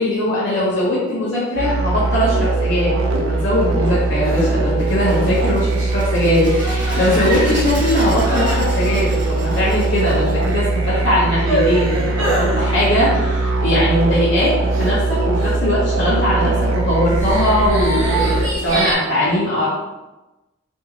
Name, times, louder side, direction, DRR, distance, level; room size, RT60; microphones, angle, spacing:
voice 1, 0.0-19.7, left 1 dB, 60° left, -9 dB, 0.6 m, -20 dB
sound 1, 1.6-18.5, right 3 dB, 90° right, 0.4 m, -20 dB
sound 2, 3.3-19.0, right 1 dB, 70° right, 0.9 m, -28 dB
sound 3, 4.8-11.3, right 1 dB, 5° right, 0.7 m, -33 dB
2.6 x 2.4 x 2.8 m, 1.1 s
head